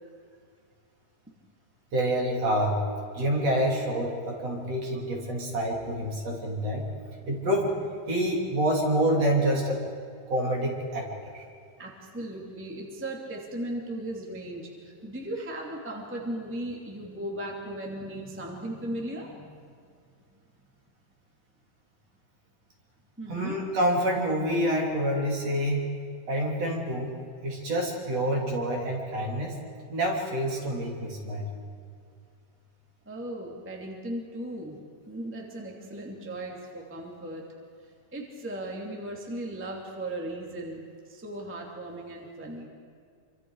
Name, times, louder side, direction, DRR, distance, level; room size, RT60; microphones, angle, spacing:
voice 1, 1.9-2.8 3.1-6.9 7.3-7.8 8.1-9.8 10.3-11.4 23.3-25.9 26.3-27.2 27.4-29.6 29.9-31.5, right 1 dB, 45° right, -1 dB, 3.8 m, -27 dB
voice 2, 11.8-19.6 23.2-23.5 33.0-34.8 35.1-37.4 38.1-42.7, right 1 dB, 5° right, -1 dB, 2.1 m, -37 dB
27.5 x 25.5 x 4.9 m, 2.2 s
omnidirectional pair, 4.3 m